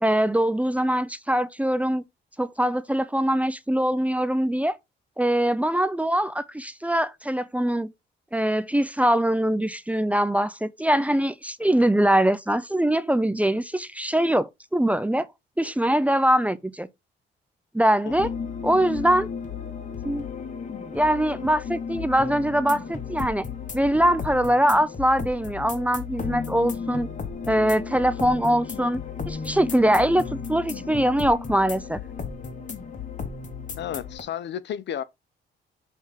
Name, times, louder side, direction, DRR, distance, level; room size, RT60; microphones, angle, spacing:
voice 1, 0.0-2.0 2.4-4.8 5.2-7.9 8.3-15.3 15.6-16.9 17.7-18.3 18.6-19.3 20.0-20.2 20.8-23.5 23.7-27.1 27.5-29.0 29.3-30.2 30.5-32.0, right 1 dB, 5° right, 0.6 m, -22 dB
sound 1, 18.1-34.2, left 6 dB, 40° left, 1.9 m, -34 dB
voice 2, 33.8-35.0, left 9 dB, 65° left, 0.8 m, -32 dB
6.2 x 3.6 x 5.6 m
cardioid pair, 90°, 20 cm